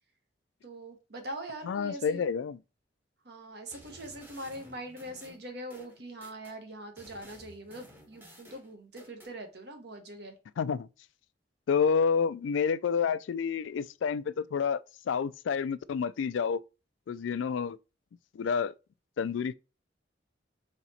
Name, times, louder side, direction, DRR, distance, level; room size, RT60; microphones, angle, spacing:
voice 1, 0.6-2.2 3.2-10.3, right 1 dB, 60° right, 1.1 m, -42 dB
voice 2, 1.7-2.6 10.6-10.9 11.7-16.6 17.1-17.8 18.3-18.7 19.2-19.5, left 6 dB, 85° left, 0.3 m, -29 dB
sound 1, 3.7-6.6 7.0-9.3, equal, 10° right, 0.9 m, -54 dB
4.1 x 2.9 x 4.2 m
head